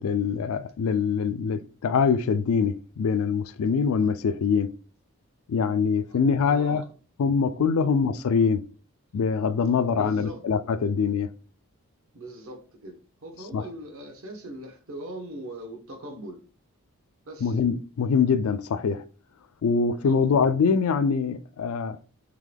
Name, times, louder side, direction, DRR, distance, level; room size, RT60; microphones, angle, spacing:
voice 1, 0.0-4.7 5.5-6.8 7.2-8.6 9.1-11.3 13.5-13.6 17.4-19.0 19.6-22.0, left 5 dB, 70° left, 0.3 m, -24 dB
voice 2, 6.1-6.9 7.8-7.9 9.9-10.4 12.1-16.4 17.2-17.6 20.0-20.3, right 1 dB, 65° right, 1.0 m, -40 dB
3.7 x 3.0 x 3.3 m
head